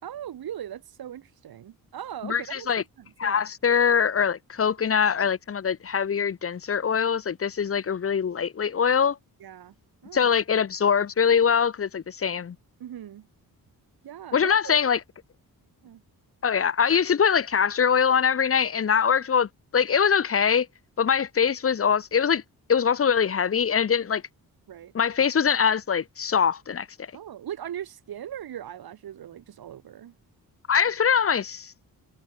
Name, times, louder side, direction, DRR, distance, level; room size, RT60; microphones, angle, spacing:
voice 1, 0.0-2.7 3.0-3.5 9.4-9.7 10.0-10.4 12.8-13.3 14.0-14.9 15.8-16.0 24.7-24.9 27.1-30.1, right 10 dB, 80° right, 5.8 m, -39 dB
voice 2, 2.2-2.8 3.2-9.2 10.1-12.5 14.3-15.0 16.4-20.7 21.0-22.4 22.7-24.2 24.9-27.1 30.7-31.7, left 7 dB, 40° left, 1.4 m, -23 dB
wide cardioid pair, 165°, 36 cm